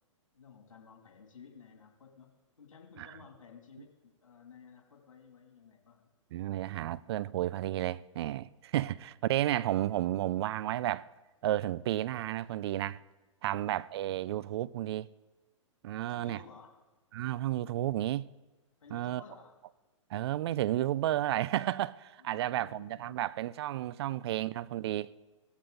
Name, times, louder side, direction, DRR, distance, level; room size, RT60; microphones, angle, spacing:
voice 1, 0.3-2.3 2.6-6.1 8.8-9.0 13.5-13.7 16.0-16.8 18.8-19.6 22.2-23.3, left 6 dB, 80° left, 2.7 m, -55 dB
voice 2, 6.3-11.1 11.4-13.0 13.4-15.1 15.8-16.4 17.1-18.3 18.9-19.2 20.1-25.1, right 13 dB, 55° right, 0.4 m, -32 dB
16.5 x 14.0 x 3.9 m
hypercardioid pair, 130°, 16 cm